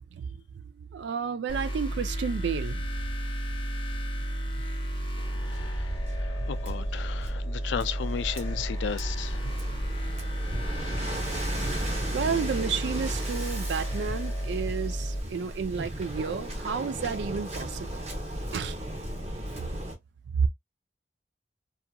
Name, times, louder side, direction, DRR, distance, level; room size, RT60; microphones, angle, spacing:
voice 1, 0.1-0.4 0.8-2.8 6.4-6.5 9.4-9.5 12.1-18.0 18.5-18.8 20.3-20.5, right 6 dB, 70° right, 0.3 m, -31 dB
sound 1, 1.5-15.2, right 1 dB, 25° left, 0.6 m, -32 dB
Waves surf, 5.2-20.0, right 1 dB, 35° right, 0.9 m, -36 dB
voice 2, 5.3-9.5, left 7 dB, 80° left, 0.3 m, -35 dB
2.8 x 2.4 x 2.2 m
head